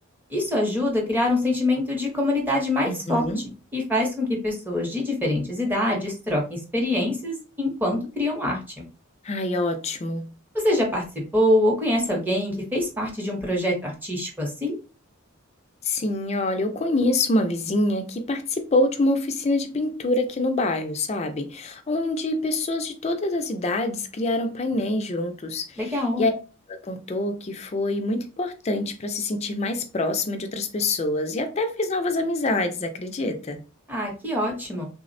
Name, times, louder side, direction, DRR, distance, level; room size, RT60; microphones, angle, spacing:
voice 1, 0.3-3.2 3.7-8.6 10.5-11.0 11.3-14.8 25.8-26.2 33.9-34.9, left 1 dB, 10° right, 0.7 m, -24 dB
voice 2, 2.8-3.4 9.2-10.3 15.8-26.4 26.7-33.6, left 2 dB, 30° left, 0.4 m, -26 dB
3.3 x 2.0 x 2.5 m
head